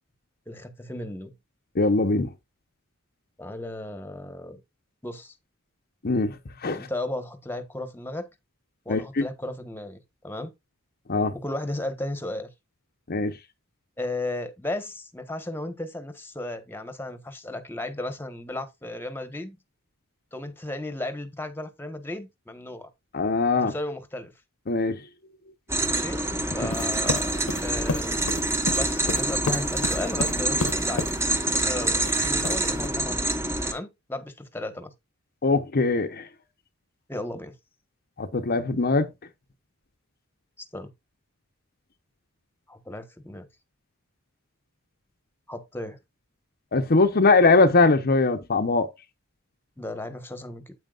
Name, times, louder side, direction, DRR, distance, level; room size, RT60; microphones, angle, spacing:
voice 1, 0.5-1.3 3.4-4.6 5.0-5.3 6.7-8.3 8.8-10.5 11.3-12.5 14.0-19.6 20.3-22.9 23.6-24.3 25.9-26.2 26.5-27.3 27.6-28.4 28.7-33.3 33.6-34.9 37.1-37.5 40.6-40.9 42.7-43.5 45.5-46.0 49.8-50.7, left 1 dB, 10° left, 1.3 m, -35 dB
voice 2, 1.8-2.3 6.0-6.4 6.6-6.9 8.9-9.2 11.1-11.3 13.1-13.3 23.1-23.7 24.7-25.0 35.4-36.2 38.2-39.1 46.7-48.9, left 3 dB, 45° left, 0.9 m, -21 dB
sound 1, 25.7-33.7, right 2 dB, 15° right, 1.1 m, -26 dB
sound 2, 26.7-31.2 32.0-32.9, left 3 dB, 85° left, 1.2 m, -31 dB
9.1 x 8.6 x 2.4 m
head